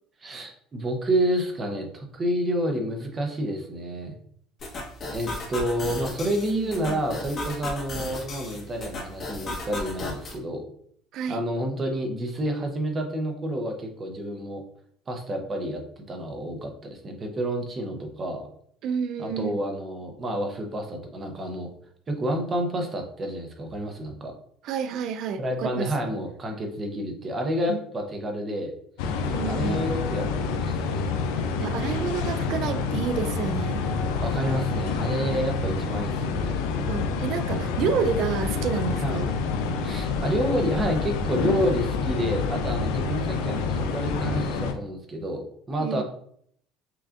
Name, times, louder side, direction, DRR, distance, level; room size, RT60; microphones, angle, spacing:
voice 1, 0.2-4.2 5.1-10.7 11.3-14.6 15.1-15.8 16.1-18.5 19.2-21.7 22.1-24.3 25.4-28.7 29.0-29.1 29.5-31.1 34.2-36.6 39.0-39.2 39.8-46.0, equal, 25° right, 3 dB, 0.7 m, -29 dB
sound 1, 4.6-10.4, left 2 dB, 35° left, 1.1 m, -35 dB
voice 2, 6.5-7.0 11.1-11.4 18.8-19.6 24.6-25.9 27.7-27.8 29.3-29.8 31.6-33.8 36.9-39.3 45.8-46.0, right 7 dB, 55° right, 11 dB, 0.4 m, -29 dB
sound 2, 29.0-44.7, left 4 dB, 90° left, 0.4 m, -27 dB
5.6 x 2.4 x 2.5 m, 0.65 s
cardioid pair, 135°, 0 cm